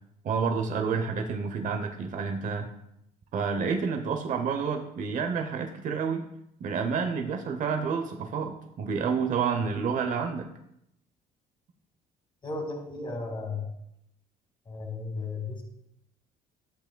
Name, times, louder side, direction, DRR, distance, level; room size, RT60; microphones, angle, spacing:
voice 1, 0.2-2.7 3.3-6.2 6.6-10.5, right 5 dB, 50° right, 5 dB, 0.8 m, -29 dB
voice 2, 12.4-13.7 14.7-15.6, left 3 dB, 30° left, 2 dB, 2.1 m, -34 dB
11.5 x 8.0 x 2.2 m, 0.79 s
cardioid pair, 110°, 17 cm